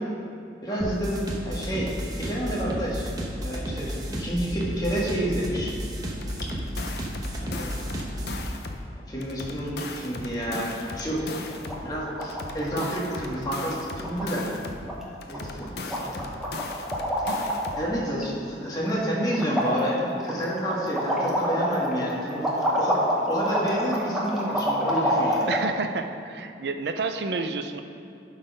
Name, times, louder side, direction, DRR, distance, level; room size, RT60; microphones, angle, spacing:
voice 1, 0.6-1.9 2.2-3.1 3.4-5.7 7.4-7.9 9.1-11.4 11.8-14.5 15.3-16.3 17.7-25.5, equal, 20° left, -5 dB, 1.5 m, -29 dB
sound 1, 0.8-8.4, equal, 20° right, 0.9 m, -33 dB
sound 2, 6.2-8.9 9.2-11.9 12.2-14.9 15.2-17.9, left 3 dB, 60° left, 0.6 m, -37 dB
sound 3, 10.4-10.9 11.2-11.3 11.5-11.8 12.0-12.9 13.1-13.3 13.6-13.7 14.0-14.6 14.9-15.0 15.3-15.7 15.9-17.9 18.2-19.0 19.3-25.6, equal, 5° right, 1.0 m, -27 dB
voice 2, 25.5-27.8, right 4 dB, 70° right, 7 dB, 0.5 m, -30 dB
11.5 x 4.1 x 5.2 m, 2.4 s
head